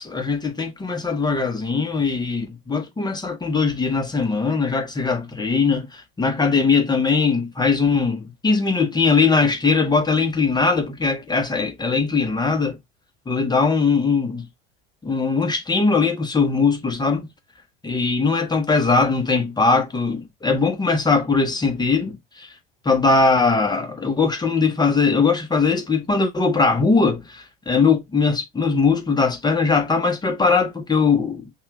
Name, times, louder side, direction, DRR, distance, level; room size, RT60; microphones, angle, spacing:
voice 1, 0.0-12.8 13.3-14.4 15.0-17.3 17.8-22.5 22.8-31.5, left 4 dB, 15° left, 1.1 m, -20 dB
5.8 x 2.5 x 3.4 m
hypercardioid pair, 80°, 29 cm